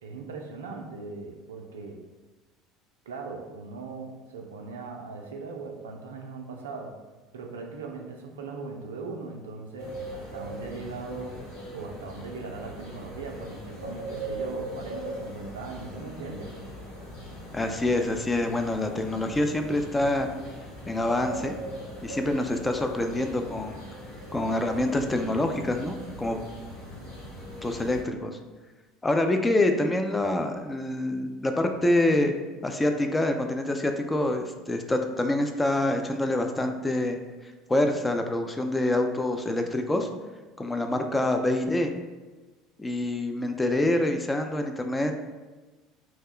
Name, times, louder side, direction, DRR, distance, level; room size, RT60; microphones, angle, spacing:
voice 1, 0.0-2.0 3.1-7.0 7.3-11.4 11.7-16.5, right 4 dB, 80° right, 2 dB, 0.3 m, -39 dB
sound 1, 9.8-28.0, right 1 dB, 85° left, 0.9 m, -40 dB
voice 2, 17.5-20.3 20.9-21.6 22.0-23.8 24.3-26.4 27.6-28.4 29.0-32.3 32.6-37.2 37.7-40.1 40.6-41.9 42.8-45.2, left 1 dB, 15° left, 5 dB, 0.3 m, -26 dB
2.3 x 2.1 x 3.5 m, 1.2 s
hypercardioid pair, 70°, 0 cm